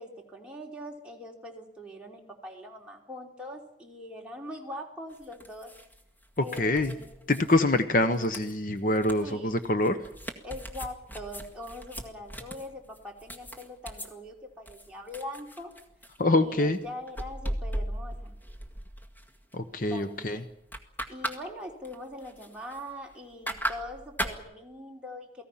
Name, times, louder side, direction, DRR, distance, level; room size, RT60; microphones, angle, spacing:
voice 1, 0.0-5.7 6.4-7.5 9.2-9.5 10.4-15.7 16.3-18.3 19.9-20.4 21.1-25.4, left 1 dB, 5° right, -2 dB, 3.2 m, -42 dB
sound 1, 5.1-14.1 14.7-16.2 16.7-19.5 19.8-20.2 20.5-21.4 21.7-23.1 23.5-24.4, equal, 10° left, 1.8 m, -38 dB
voice 2, 6.4-6.9 7.3-10.0 16.2-16.8 19.5-20.4, left 2 dB, 50° left, 9 dB, 1.1 m, -25 dB
29.0 x 18.0 x 5.8 m, 0.80 s
head